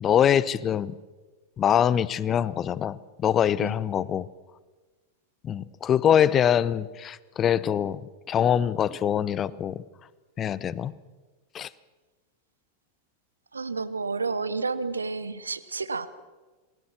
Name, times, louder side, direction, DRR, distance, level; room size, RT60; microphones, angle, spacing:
voice 1, 0.0-0.9 1.6-4.3 5.4-8.0 8.3-9.8 10.4-10.9 11.5-11.7, left 9 dB, 25° left, 20 dB, 0.8 m, -24 dB
voice 2, 13.5-16.1, right 4 dB, 75° right, 14 dB, 1.1 m, -30 dB
28.0 x 21.0 x 6.2 m, 1.3 s
figure-of-eight pair, 90°, 0 cm